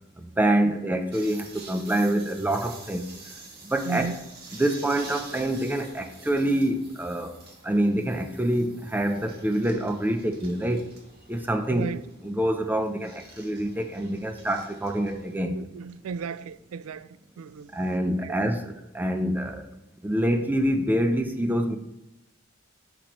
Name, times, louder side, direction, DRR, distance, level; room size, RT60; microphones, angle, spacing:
voice 1, 0.2-3.1 3.6-4.1 4.6-7.4 7.6-10.9 11.3-11.9 12.2-15.6 17.7-19.7 20.0-21.7, right 1 dB, 10° right, 0.5 m, -26 dB
sound 1, 1.1-15.4, right 3 dB, 50° right, 1.7 m, -47 dB
voice 2, 3.9-4.3 11.7-12.0 15.5-17.1 17.4-17.7 18.2-18.4, right 5 dB, 90° right, 0.3 m, -34 dB
10.5 x 6.0 x 3.0 m
head